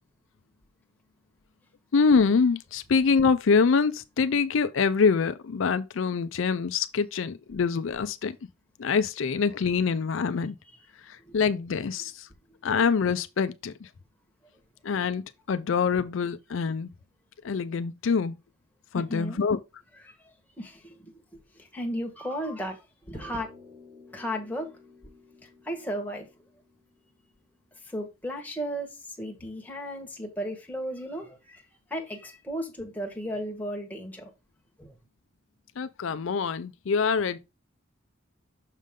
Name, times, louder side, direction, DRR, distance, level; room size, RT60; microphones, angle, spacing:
voice 1, 1.9-8.3 8.8-10.6 11.0-12.3 12.6-13.9 14.8-16.9 17.4-18.3 18.9-19.6 35.8-37.4, left 5 dB, 70° left, 0.4 m, -25 dB
voice 2, 18.9-19.4 20.0-21.2 21.5-23.5 24.1-24.8 25.4-26.3 27.8-31.6 31.9-34.3 34.8-35.0, equal, 10° left, 1.4 m, -35 dB
sound 1, 23.1-27.8, left 3 dB, 50° right, 4.3 m, -54 dB
6.4 x 5.2 x 3.7 m
head